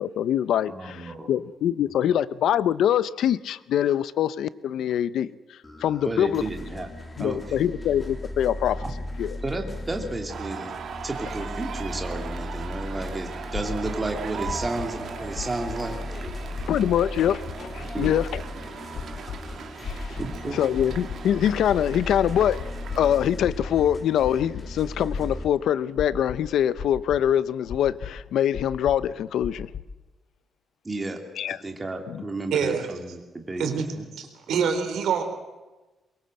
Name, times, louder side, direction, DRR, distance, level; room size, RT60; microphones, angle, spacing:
voice 1, 0.0-5.3 5.8-6.4 7.2-8.8 9.2-9.3 16.7-18.4 19.8-20.2 20.5-22.6 22.9-29.7 31.4-31.6 32.1-32.2, left 10 dB, 75° left, 0.8 m, -24 dB
voice 2, 0.7-1.3 1.8-1.9 6.0-6.9 7.2-7.6 8.8-8.9 9.4-10.7 11.0-16.3 17.9-18.2 20.2-20.6 30.8-31.2 31.5-33.7 33.9-34.1, right 2 dB, 15° right, 2.8 m, -32 dB
sound 1, 5.6-25.4, left 1 dB, 15° left, 2.9 m, -37 dB
sound 2, 10.3-23.2, right 7 dB, 55° right, 2.0 m, -39 dB
sound 3, 13.5-13.9 14.4-14.9 15.3-15.9 16.2-16.7 17.1-17.6 18.0-18.4 18.9-19.4 19.8-20.4 20.7-21.2 21.7-22.2 22.5-23.0 23.4-24.6 25.1-25.5 26.0-26.5 26.8-27.2 27.7-28.1 28.5-29.1 29.4-29.8, left 7 dB, 55° left, 3.1 m, -35 dB
voice 3, 32.5-32.9 33.6-33.9 34.1-35.2, right 6 dB, 80° right, 4.1 m, -25 dB
23.0 x 22.5 x 7.8 m
cardioid pair, 160°, 0 cm